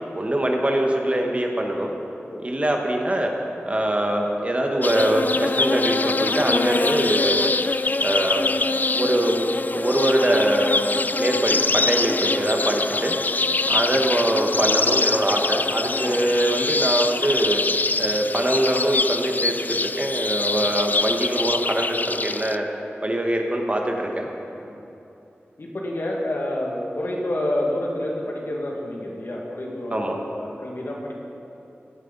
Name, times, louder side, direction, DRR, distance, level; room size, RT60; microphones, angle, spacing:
voice 1, 0.1-1.9 2.4-3.3 3.6-7.5 8.0-8.5 8.9-9.5 9.7-13.2 13.7-17.6 18.0-22.7 23.0-24.3 29.9-30.2, right 1 dB, 30° right, 2 dB, 1.3 m, -23 dB
sound 1, 4.8-22.6, left 3 dB, 45° left, 0.3 m, -24 dB
voice 2, 13.7-14.0 16.0-16.2 24.5-24.8 25.6-31.1, left 1 dB, 65° left, -2 dB, 2.1 m, -29 dB
16.0 x 9.2 x 4.1 m, 2.9 s
wide cardioid pair, 60°, 4 cm